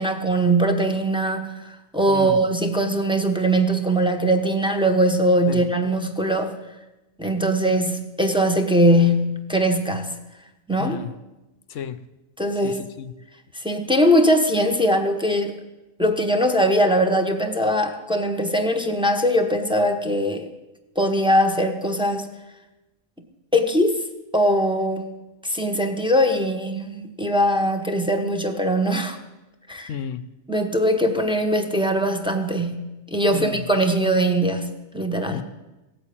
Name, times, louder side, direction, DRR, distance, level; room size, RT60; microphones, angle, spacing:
voice 1, 0.0-6.5 7.2-10.1 10.7-11.0 12.4-12.8 13.5-15.6 16.0-20.5 20.9-22.3 23.5-24.0 24.3-25.0 25.4-29.2 29.7-29.9 30.5-34.7 34.9-35.4, equal, 5° right, 4 dB, 1.3 m, -21 dB
voice 2, 2.1-2.4 5.5-5.6 10.8-11.1 11.7-12.0 12.6-13.1 29.9-30.2 33.3-33.6 35.3-35.4, left 8 dB, 75° left, 15 dB, 1.0 m, -32 dB
17.0 x 8.8 x 8.7 m, 1.0 s
omnidirectional pair, 1.3 m